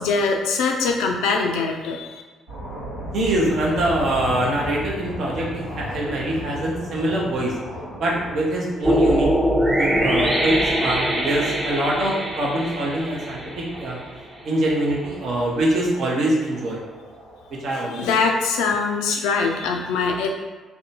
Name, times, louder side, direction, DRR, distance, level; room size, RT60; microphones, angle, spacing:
voice 1, 0.0-2.2 17.9-20.3, left 4 dB, 70° left, 3 dB, 0.3 m, -22 dB
sound 1, 2.5-17.7, equal, 85° right, 1.2 m, -37 dB
voice 2, 3.1-7.6 8.0-9.3 9.8-14.0 14.4-16.8 17.6-18.1, right 1 dB, 55° right, -3 dB, 0.7 m, -24 dB
sound 2, 8.8-14.0, equal, 15° right, 0.6 m, -22 dB
2.6 x 2.2 x 2.8 m, 1.3 s
figure-of-eight pair, 45°, 0 cm